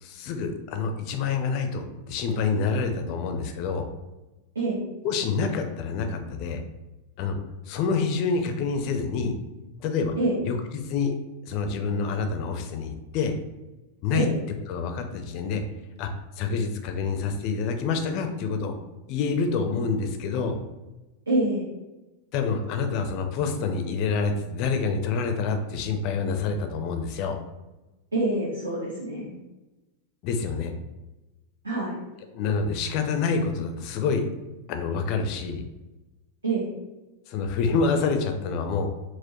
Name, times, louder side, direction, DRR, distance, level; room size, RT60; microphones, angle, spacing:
voice 1, 0.0-3.9 5.0-6.6 7.2-7.4 7.7-9.3 9.8-10.1 10.4-11.1 11.5-13.3 14.0-14.3 14.7-15.6 16.0-16.1 16.4-18.8 19.1-20.6 22.3-27.4 30.2-30.7 32.3-34.3 34.7-35.6 37.3-38.9, left 5 dB, 40° left, 6 dB, 0.4 m, -27 dB
voice 2, 21.3-21.6 28.1-29.4 31.6-32.0 36.4-36.7, right 2 dB, 75° right, -5 dB, 0.7 m, -26 dB
4.3 x 2.1 x 2.9 m, 1.1 s
figure-of-eight pair, 90°, 0 cm